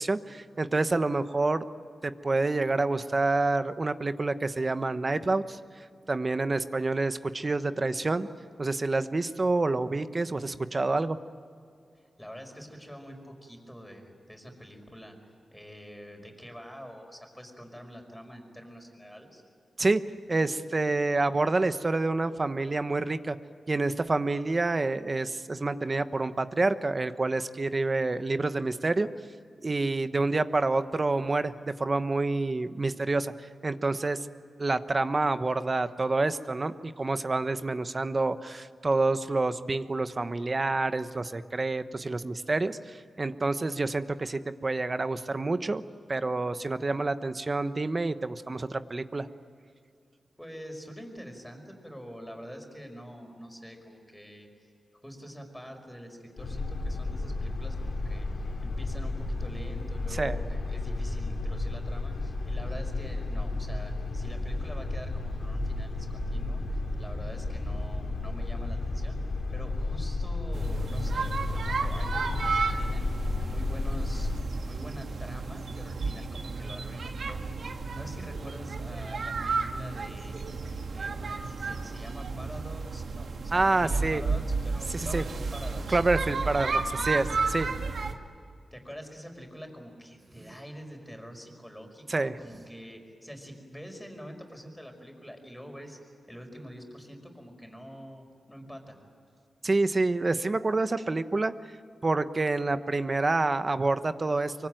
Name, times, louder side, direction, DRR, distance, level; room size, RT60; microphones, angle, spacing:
voice 1, 0.0-1.6 2.0-5.6 6.1-8.3 8.6-11.2 19.8-20.0 20.3-23.4 23.7-29.1 29.6-34.2 34.6-45.8 46.1-49.3 60.1-60.4 83.5-84.2 84.9-85.2 85.9-87.7 92.1-92.3 99.6-101.5 102.0-104.7, right 3 dB, 35° right, 11 dB, 1.1 m, -28 dB
voice 2, 11.9-15.2 15.5-19.4 50.4-54.5 54.9-69.2 69.5-73.1 73.4-74.3 74.6-80.5 80.9-86.0 88.7-96.0 96.3-99.0, equal, 5° left, 4 dB, 5.2 m, -45 dB
sound 1, 56.4-74.4, left 2 dB, 70° left, 3.4 m, -32 dB
sound 2, 70.5-88.1, right 4 dB, 75° right, 1.9 m, -33 dB
24.5 x 24.0 x 9.2 m, 2.3 s
wide cardioid pair, 85°, 0 cm